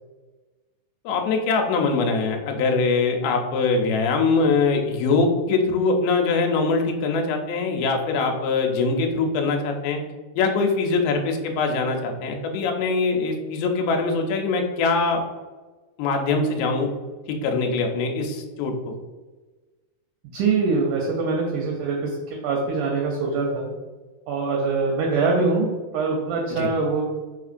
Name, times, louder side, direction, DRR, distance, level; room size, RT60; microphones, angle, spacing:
voice 1, 1.1-10.0 10.4-15.2 16.0-16.9 17.4-18.9 26.5-26.7, left 4 dB, 90° left, 3 dB, 2.4 m, -22 dB
voice 2, 20.2-23.7 24.3-27.0, right 4 dB, 80° right, 0 dB, 1.9 m, -23 dB
4.9 x 3.5 x 2.5 m, 1.3 s
omnidirectional pair, 4.1 m